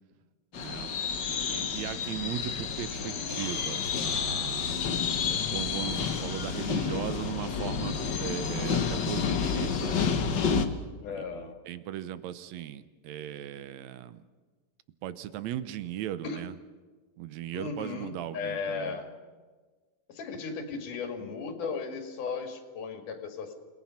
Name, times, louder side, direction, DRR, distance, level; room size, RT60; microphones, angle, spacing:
sound 1, 0.5-10.7, left 6 dB, 55° left, 1.2 m, -30 dB
voice 1, 0.6-4.8 5.3-10.2 11.2-14.2 15.0-16.5 17.2-19.0, right 12 dB, 70° right, 13 dB, 2.0 m, -38 dB
voice 2, 11.0-11.6 16.2-16.4 17.5-19.1 20.1-23.5, left 5 dB, 80° left, 5 dB, 3.7 m, -36 dB
29.0 x 19.0 x 5.8 m, 1.4 s
omnidirectional pair, 3.6 m